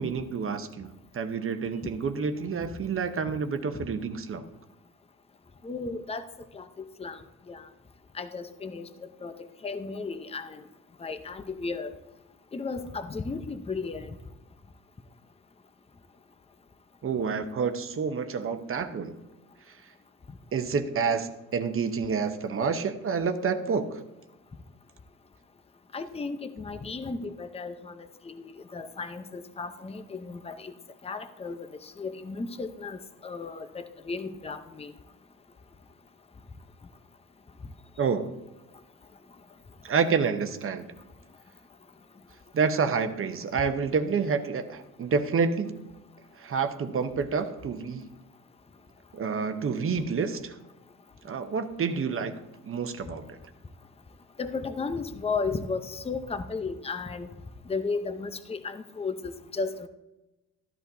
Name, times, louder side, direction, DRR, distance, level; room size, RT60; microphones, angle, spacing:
voice 1, 0.0-4.5 17.0-19.2 19.7-19.8 20.5-24.0 38.0-38.3 39.8-40.9 42.5-45.8 46.4-48.1 49.1-50.5 51.2-52.3 52.7-53.4, right 5 dB, 45° right, 7 dB, 0.9 m, -28 dB
voice 2, 5.6-6.2 6.5-7.2 7.5-7.6 8.1-8.9 9.2-9.4 9.6-10.6 11.0-11.9 12.5-14.1 25.9-30.7 31.0-34.9 54.4-57.3 57.7-59.9, left 4 dB, 20° left, 9 dB, 0.7 m, -34 dB
13.5 x 10.5 x 2.7 m, 1.0 s
cardioid pair, 90°, 30 cm